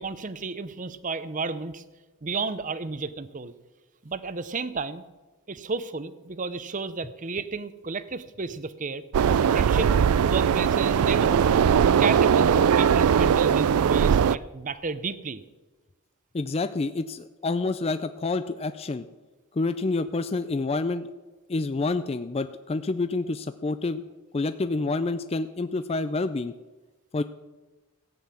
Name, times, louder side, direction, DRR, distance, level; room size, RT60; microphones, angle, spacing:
voice 1, 0.0-1.8 2.2-3.5 4.0-5.0 5.5-9.0 9.5-9.9 10.2-11.5 12.0-15.4, right 4 dB, 35° right, 14 dB, 0.7 m, -32 dB
sound 1, 9.1-14.4, right 7 dB, 80° right, 0.4 m, -20 dB
voice 2, 16.3-19.1 19.5-21.1 21.5-24.0 24.3-26.5 27.1-27.2, left 3 dB, 25° left, 11 dB, 0.4 m, -28 dB
15.0 x 9.5 x 7.0 m, 1.2 s
head